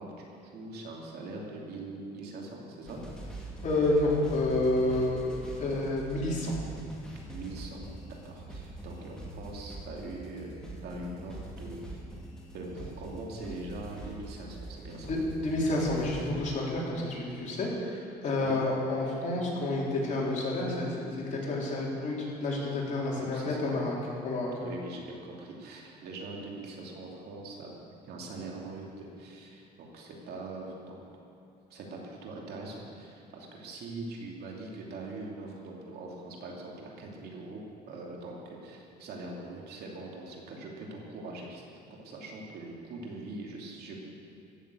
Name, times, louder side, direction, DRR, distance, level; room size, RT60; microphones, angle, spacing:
voice 1, 0.0-3.0 7.3-7.8 8.1-12.0 12.5-15.1 18.4-18.6 23.1-23.7 24.6-27.8 28.0-31.0 31.7-37.6 37.9-41.6 42.0-44.0, right 2 dB, 70° right, -1 dB, 2.8 m, -42 dB
sound 1, 2.9-16.3, right 2 dB, 5° left, 2.6 m, -44 dB
voice 2, 3.6-5.2 5.6-6.5 15.0-24.0 24.2-24.5, left 2 dB, 45° left, -4 dB, 3.8 m, -29 dB
15.0 x 7.2 x 8.3 m, 2.7 s
cardioid pair, 110°, 17 cm